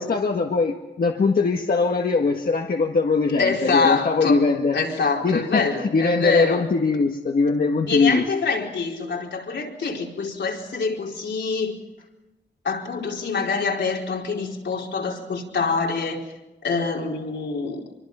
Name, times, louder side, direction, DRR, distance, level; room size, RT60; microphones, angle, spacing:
voice 1, 0.0-4.8 5.2-8.3, left 4 dB, 55° left, 2 dB, 1.7 m, -21 dB
voice 2, 3.4-4.5 4.7-6.6 7.9-11.7 12.6-16.2 16.6-17.8, left 4 dB, 80° left, -1 dB, 4.7 m, -25 dB
25.5 x 24.0 x 5.7 m, 1.0 s
wide cardioid pair, 125°, 18 cm